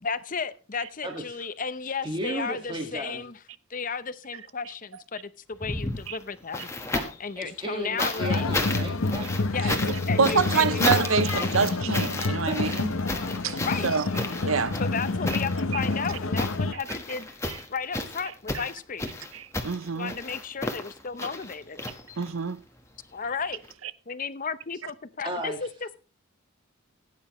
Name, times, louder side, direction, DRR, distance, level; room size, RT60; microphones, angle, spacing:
voice 1, 0.0-3.4 3.7-6.7 7.2-8.5 9.5-9.7 10.1-11.1 13.6-13.9 14.8-17.3 17.7-19.1 19.9-21.8 23.1-23.6 24.1-26.0, left 5 dB, 40° left, 0.7 m, -33 dB
voice 2, 1.0-1.4 2.0-3.2 6.9-7.1 7.3-9.3 12.4-12.8 25.2-25.6, right 1 dB, 25° right, 1.8 m, -34 dB
sound 1, 5.5-7.3 8.0-22.5 23.6-23.7, left 2 dB, 15° left, 1.3 m, -33 dB
sound 2, 8.2-16.7, left 3 dB, 75° left, 0.8 m, -28 dB
voice 3, 9.6-12.9 13.4-14.1 14.4-14.8 15.7-15.8 17.5-17.6 18.5-18.6 19.3-20.1 22.2-22.6, right 5 dB, 75° right, 0.7 m, -26 dB
17.0 x 9.6 x 3.1 m
head